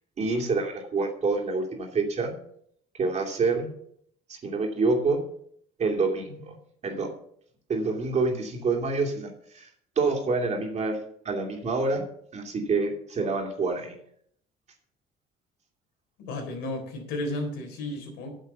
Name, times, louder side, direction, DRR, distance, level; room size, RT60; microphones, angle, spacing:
voice 1, 0.2-2.3 3.0-3.7 4.3-5.2 5.8-6.6 6.8-7.1 7.7-9.7 10.0-11.0 11.2-12.0 12.3-13.9, right 3 dB, 40° right, 2 dB, 2.6 m, -27 dB
voice 2, 16.2-18.3, left 1 dB, 85° left, 2 dB, 3.8 m, -33 dB
9.1 x 7.3 x 6.9 m, 0.67 s
cardioid pair, 110°, 17 cm